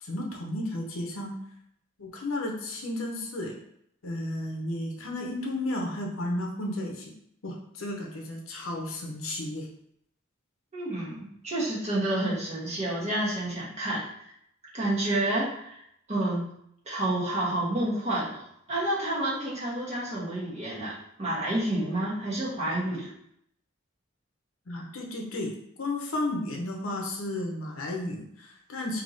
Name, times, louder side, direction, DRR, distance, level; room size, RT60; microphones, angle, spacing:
voice 1, 0.0-1.4 2.0-3.6 4.0-7.1 7.4-9.7 24.7-25.5 25.8-29.0, left 1 dB, 85° left, 0 dB, 0.8 m, -33 dB
voice 2, 10.7-14.3 14.7-15.8 16.1-16.5 16.8-18.4 18.7-23.1, right 1 dB, 35° right, -6 dB, 1.3 m, -29 dB
3.5 x 2.9 x 3.9 m, 0.73 s
head